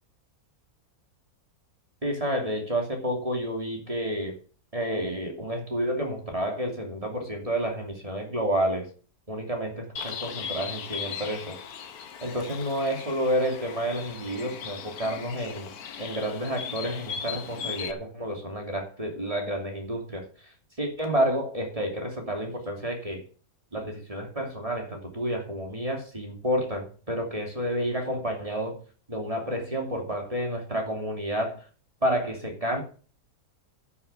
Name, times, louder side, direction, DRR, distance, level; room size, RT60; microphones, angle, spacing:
voice 1, 2.0-4.4 4.7-8.9 9.3-11.6 12.2-15.7 16.0-23.2 23.7-28.8 29.1-31.7 32.0-32.8, equal, 20° right, 2 dB, 2.9 m, -30 dB
Bird, 10.0-17.9, left 7 dB, 75° left, 1.6 m, -38 dB
11.0 x 7.2 x 6.9 m, 0.39 s
omnidirectional pair, 1.6 m